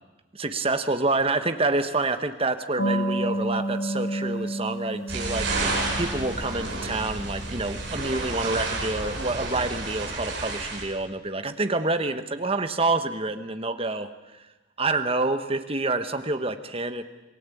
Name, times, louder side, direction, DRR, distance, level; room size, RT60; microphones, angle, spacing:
voice 1, 0.3-14.1 14.8-17.0, right 2 dB, 25° right, 9 dB, 1.2 m, -27 dB
sound 1, 2.8-9.0, right 1 dB, 90° left, 4.8 m, -32 dB
sound 2, 5.1-10.8, right 2 dB, 55° right, 7.5 m, -30 dB
27.0 x 18.5 x 8.5 m, 1.1 s
head